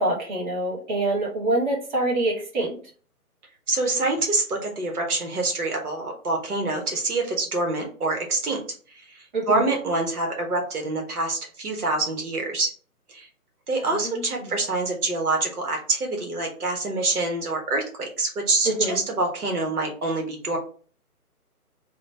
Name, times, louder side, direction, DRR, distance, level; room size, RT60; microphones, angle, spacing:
voice 1, 0.0-2.8 9.3-9.6 13.9-14.5 18.6-19.0, right 2 dB, 30° right, -4 dB, 1.1 m, -26 dB
voice 2, 3.7-8.6 8.9-12.7 13.1-13.3 13.7-20.6, right 2 dB, 75° right, 1 dB, 1.2 m, -26 dB
3.0 x 2.2 x 4.0 m, 0.42 s
figure-of-eight pair, 150°, 46 cm